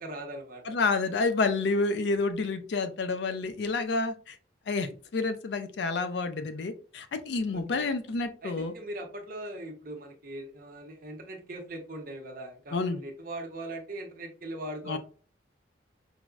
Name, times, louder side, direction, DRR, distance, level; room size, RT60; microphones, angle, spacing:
voice 1, 0.0-0.6 7.5-7.9 8.4-15.0, right 1 dB, 50° right, 2 dB, 0.7 m, -40 dB
voice 2, 0.6-4.4 4.7-8.7 12.7-13.0 14.9-15.0, left 3 dB, 65° left, 10 dB, 0.4 m, -29 dB
4.6 x 2.0 x 2.3 m, 0.39 s
head